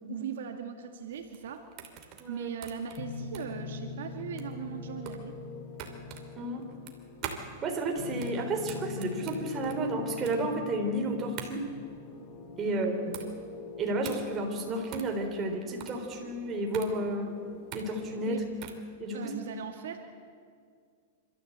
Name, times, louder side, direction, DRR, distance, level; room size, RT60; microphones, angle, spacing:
voice 1, 0.1-1.7 2.3-5.3 18.2-18.5 19.1-20.0, right 8 dB, 75° right, 4 dB, 1.9 m, -39 dB
sound 1, 1.1-18.9, right 8 dB, 40° right, 2.8 m, -45 dB
sound 2, 3.0-18.6, left 4 dB, 50° left, 2.8 m, -43 dB
voice 2, 7.6-11.6 12.6-13.4 13.8-17.3 17.7-18.4 19.0-19.3, right 1 dB, 25° right, 2 dB, 3.9 m, -32 dB
26.5 x 14.0 x 8.1 m, 2.1 s
hypercardioid pair, 130°, 0 cm